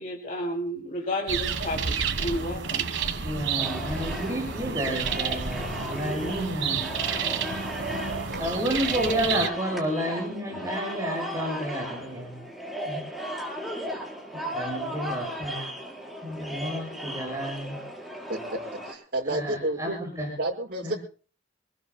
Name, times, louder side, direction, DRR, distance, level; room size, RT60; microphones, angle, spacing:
voice 1, 0.0-2.9, equal, 45° left, 0 dB, 2.7 m, -32 dB
sound 1, 1.3-9.5, right 6 dB, 85° right, 1.4 m, -30 dB
voice 2, 3.2-7.0 8.4-12.4 12.9-13.0 14.3-15.6 16.2-17.8 19.3-20.3 20.8-20.9, equal, 15° right, -1 dB, 7.1 m, -31 dB
sound 2, 3.6-18.9, equal, ahead, 4.6 m, -36 dB
voice 3, 18.9-20.0 20.4-21.0, right 1 dB, 55° right, -1 dB, 5.9 m, -29 dB
26.0 x 20.5 x 2.2 m, 0.39 s
head